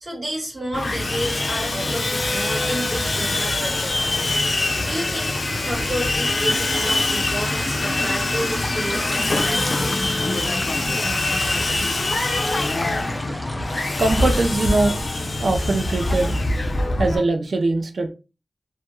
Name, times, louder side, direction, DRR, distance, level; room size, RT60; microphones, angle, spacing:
voice 1, 0.0-4.3 4.9-5.3 5.6-9.9, right 1 dB, 45° right, -2 dB, 1.2 m, -31 dB
Sawing, 0.7-17.2, left 2 dB, 65° left, 0.5 m, -24 dB
sound 1, 1.6-13.4, left 1 dB, 40° left, 0.7 m, -37 dB
sound 2, 6.7-14.5, equal, ahead, 0.5 m, -35 dB
voice 2, 14.0-15.0 15.4-16.3 17.0-18.1, right 2 dB, 85° right, 5 dB, 0.3 m, -21 dB
2.1 x 2.0 x 2.9 m, 0.30 s
wide cardioid pair, 55°, 0 cm